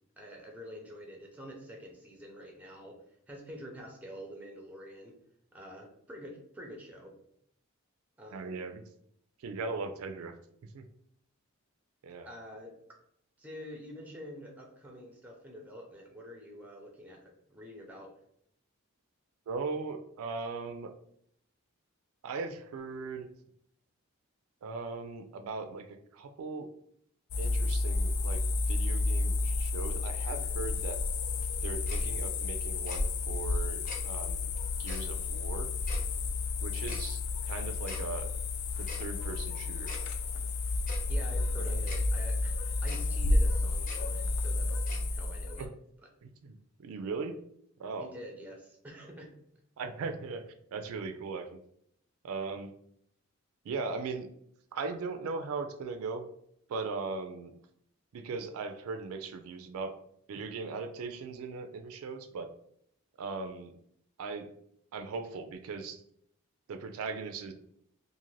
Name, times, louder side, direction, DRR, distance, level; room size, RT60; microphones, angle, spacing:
voice 1, 0.2-5.2 5.5-7.1 8.2-8.6 12.3-12.7 13.4-18.1 41.1-45.7 46.0-46.1 48.0-49.3, equal, 5° right, 0 dB, 0.5 m, -47 dB
voice 2, 8.3-8.8 9.4-10.4 10.7-10.8 12.0-12.3 19.5-20.9 22.2-23.3 24.6-26.7 27.4-31.0 31.6-34.5 34.8-35.7 36.6-38.3 38.8-40.0 41.6-41.8 45.6-45.7 46.2-47.3 47.8-48.1 49.8-50.4 50.7-51.6 52.2-52.7 53.6-54.3 54.7-56.3 56.7-57.5 58.1-59.9 60.3-62.5 63.2-63.7 64.2-64.5 64.9-66.0 66.7-67.5, right 4 dB, 75° right, 7 dB, 0.3 m, -39 dB
sound 1, 27.3-45.7, left 3 dB, 75° left, 0.4 m, -31 dB
Tick-tock, 31.9-32.0 32.9-33.0 33.9-34.0 34.9-35.0 35.9-36.0 36.9-37.0 37.9-38.0 38.9-39.0 39.9-40.0 40.9-41.0 41.9-42.0 42.9-43.0 43.9-44.0 44.9-45.0, left 1 dB, 35° left, 0.9 m, -43 dB
2.5 x 2.5 x 3.1 m, 0.70 s
head